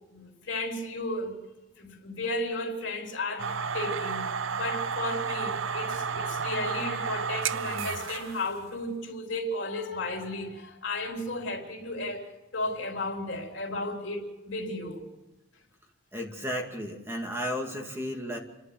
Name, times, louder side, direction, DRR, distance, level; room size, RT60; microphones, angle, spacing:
voice 1, 0.1-1.4 1.8-15.1, left 2 dB, 65° left, 3.8 m, -34 dB
sound 1, 3.4-8.6, right 6 dB, 80° right, 0.7 m, -32 dB
voice 2, 16.1-18.4, equal, 15° right, 2.3 m, -33 dB
29.5 x 11.5 x 7.7 m
head